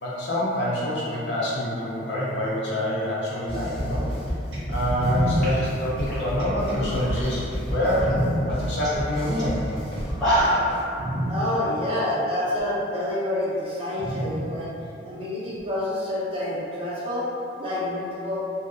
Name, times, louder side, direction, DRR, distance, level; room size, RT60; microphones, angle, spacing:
voice 1, 0.0-4.1 4.7-9.9, left 1 dB, 70° left, -7 dB, 0.6 m, -26 dB
sound 1, 3.5-10.8, equal, 30° left, 0.5 m, -32 dB
sound 2, 4.5-8.5 9.4-10.1 10.5-10.7 11.0-11.5 12.6-12.7 14.0-14.5 15.6-15.7, equal, 75° right, 0.5 m, -28 dB
sound 3, 5.0-5.1 5.4-7.3 7.7-8.1 8.5-8.6 8.8-9.0 9.4-9.5 10.0-10.8, equal, ahead, 1.1 m, -26 dB
voice 2, 11.3-14.7 15.0-17.3 17.6-18.4, left 1 dB, 30° right, -8 dB, 0.6 m, -28 dB
2.7 x 2.1 x 2.4 m, 2.6 s
head